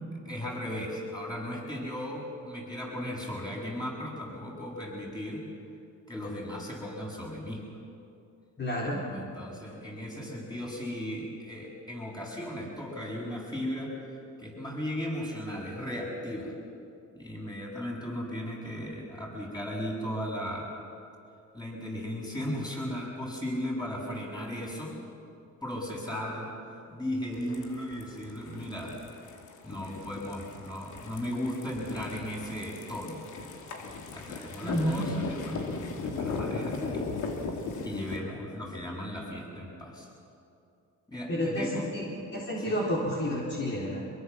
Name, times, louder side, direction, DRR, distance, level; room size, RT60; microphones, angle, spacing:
voice 1, 0.2-5.4 6.1-7.6 9.1-13.9 14.4-16.5 17.1-20.7 21.5-25.0 25.6-26.5 26.9-28.9 29.6-33.2 34.1-35.6 35.9-37.1 37.8-40.1 41.1-41.9 42.6-42.8, equal, 15° left, -2 dB, 7.8 m, -36 dB
voice 2, 8.6-9.0 34.6-35.1 41.3-41.7 41.9-42.0 42.3-44.0, equal, 35° left, -5 dB, 4.2 m, -30 dB
sound 1, 27.3-38.2, left 4 dB, 75° left, 2.5 m, -38 dB
24.0 x 22.5 x 7.3 m, 2.6 s
cardioid pair, 90°, 30 cm